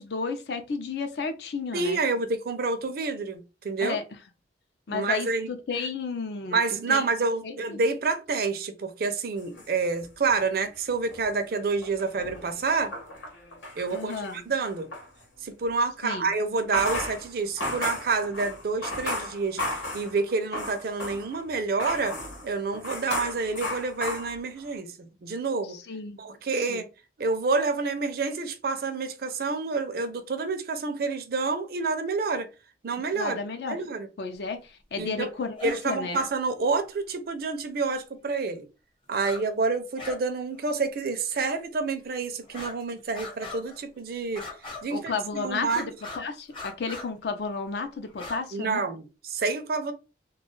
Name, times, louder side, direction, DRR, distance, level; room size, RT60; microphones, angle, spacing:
voice 1, 0.0-2.0 3.8-4.0 4.9-6.6 6.9-7.0 7.4-7.8 13.9-14.4 16.0-16.3 25.6-26.2 26.7-26.8 33.1-33.8 34.2-36.2 44.9-48.8, left 4 dB, 65° left, 0.5 m, -32 dB
voice 2, 1.7-4.0 4.9-5.5 6.5-12.9 13.8-14.9 15.4-19.6 19.9-25.8 26.2-26.9 27.2-32.5 32.8-33.4 33.7-34.1 35.0-35.3 35.6-38.7 39.1-44.4 44.8-45.8 48.5-49.9, right 4 dB, 55° right, 0.4 m, -28 dB
sound 1, 9.4-10.6 10.9-15.1 16.5-21.4 21.8-24.7, left 1 dB, 90° left, 1.1 m, -35 dB
sound 2, 35.5-35.8 36.1-36.3 37.9-38.0 39.1-39.4 39.7-40.2 40.5-40.6 41.3-41.4 42.4-42.8 43.1-43.8 44.3-45.0 45.6-46.2 46.5-47.1 48.1-48.4, left 3 dB, 30° left, 0.7 m, -40 dB
2.3 x 2.3 x 3.0 m
head